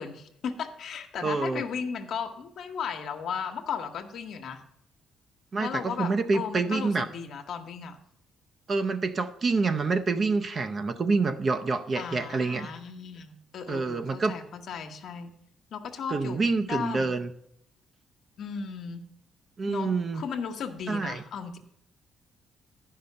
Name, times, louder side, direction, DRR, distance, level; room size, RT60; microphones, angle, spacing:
voice 1, 0.0-4.6 5.6-8.0 11.9-15.3 15.7-17.1 18.4-19.1 19.7-21.6, left 6 dB, 70° left, 5 dB, 1.1 m, -36 dB
voice 2, 1.2-1.6 5.5-7.1 8.7-12.7 13.7-14.3 16.1-17.3 19.6-20.2 20.9-21.2, right 4 dB, 40° right, 8 dB, 0.6 m, -27 dB
10.5 x 5.6 x 6.6 m, 0.73 s
cardioid pair, 90°, 0 cm